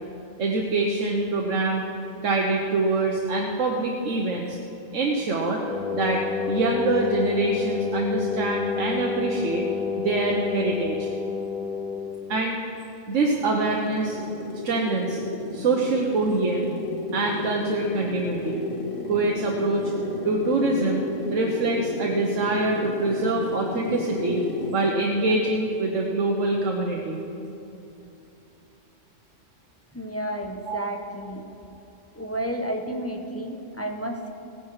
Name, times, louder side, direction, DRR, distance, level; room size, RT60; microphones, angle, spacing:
voice 1, 0.4-1.8 2.2-4.6 4.9-5.6 5.9-6.2 6.5-9.6 10.0-11.1 12.3-12.6 13.1-14.2 14.6-15.2 15.5-16.7 17.1-18.6 19.1-19.9 20.2-24.4 24.7-27.2 30.7-30.8, right 2 dB, 80° right, 0 dB, 1.4 m, -25 dB
Wind instrument woodwind instrument, 5.6-12.2, left 6 dB, 5° right, 1.6 m, -29 dB
sound 1, 13.1-24.9, left 2 dB, 75° left, 1.7 m, -33 dB
voice 2, 29.9-31.5 32.1-34.3, right 1 dB, 15° left, 2 dB, 0.9 m, -31 dB
17.5 x 10.5 x 4.8 m, 2.9 s
omnidirectional pair, 1.3 m